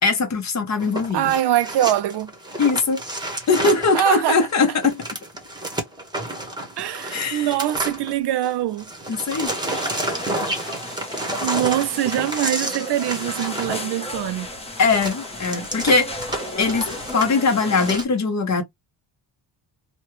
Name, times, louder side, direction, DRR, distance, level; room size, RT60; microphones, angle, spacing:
voice 1, 0.0-1.3 2.6-3.0 3.5-5.0 7.1-7.5 9.1-9.5 14.8-16.1 16.6-16.9 17.1-18.6, left 4 dB, 35° left, 1.0 m, -21 dB
sound 1, 0.8-8.5 8.8-18.0, right 1 dB, 10° right, 1.0 m, -30 dB
voice 2, 1.1-2.3 3.9-4.5 6.8-8.9 11.4-14.5, right 12 dB, 65° right, 0.5 m, -23 dB
sound 2, 9.5-18.0, left 1 dB, 15° left, 0.8 m, -34 dB
3.1 x 2.3 x 3.0 m
cardioid pair, 135°, 45 cm